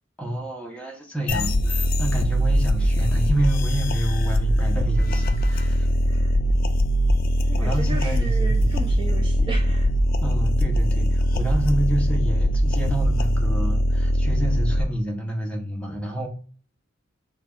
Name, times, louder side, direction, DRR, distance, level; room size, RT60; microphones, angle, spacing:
voice 1, 0.2-5.9 7.6-8.7 9.1-9.2 10.2-16.3, right 1 dB, 5° left, 0 dB, 0.7 m, -29 dB
sound 1, 1.3-14.8, equal, 45° left, 0.3 m, -21 dB
voice 2, 6.0-6.4 7.5-9.9, right 1 dB, 25° right, 1 dB, 0.4 m, -35 dB
3.2 x 2.3 x 3.5 m, 0.41 s
head